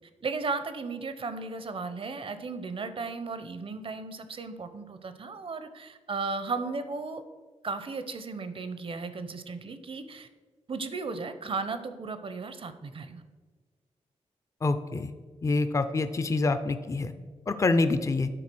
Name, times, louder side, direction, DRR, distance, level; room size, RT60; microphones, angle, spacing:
voice 1, 0.2-7.2 7.6-10.3 10.7-13.2, right 4 dB, 55° right, 10 dB, 0.7 m, -35 dB
voice 2, 14.6-15.1 15.4-17.1 17.5-18.3, left 3 dB, 25° left, 10 dB, 0.5 m, -26 dB
10.0 x 4.0 x 6.0 m, 1.4 s
wide cardioid pair, 95°, 11 cm